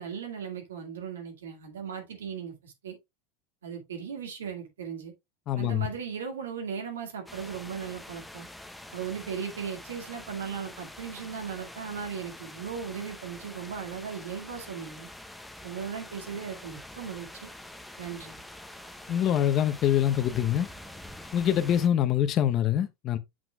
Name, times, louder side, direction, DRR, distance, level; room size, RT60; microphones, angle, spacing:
voice 1, 0.0-3.0 3.6-5.1 5.6-8.5 8.9-15.1 15.6-17.5 18.0-18.4, right 7 dB, 90° right, 2.0 m, -37 dB
voice 2, 5.5-5.9 19.1-20.7 21.3-23.2, left 10 dB, 40° left, 0.9 m, -25 dB
sound 1, 7.3-21.9, left 1 dB, 5° left, 0.9 m, -46 dB
7.6 x 6.0 x 2.3 m
hypercardioid pair, 100°, 0 cm